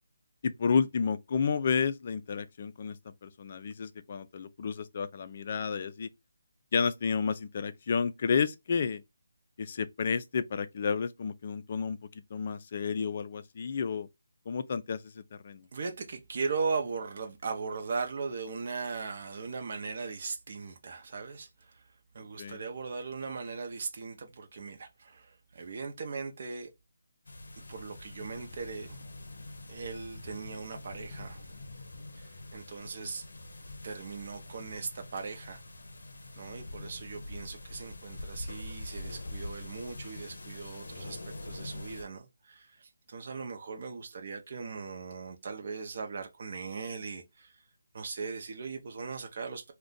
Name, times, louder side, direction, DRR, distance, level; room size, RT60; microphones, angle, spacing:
voice 1, 0.4-6.1 6.7-9.0 9.6-14.1 14.5-15.7 22.4-22.6 33.0-33.1, left 6 dB, 40° left, 0.4 m, -31 dB
voice 2, 15.7-21.9 22.1-26.7 27.7-29.0 29.7-31.4 32.2-33.3 33.8-35.6 36.4-47.6 47.9-49.7, right 4 dB, 45° right, 0.6 m, -38 dB
sound 1, 27.3-42.0, left 2 dB, 80° left, 0.6 m, -44 dB
2.5 x 2.2 x 3.8 m
hypercardioid pair, 165°, 0 cm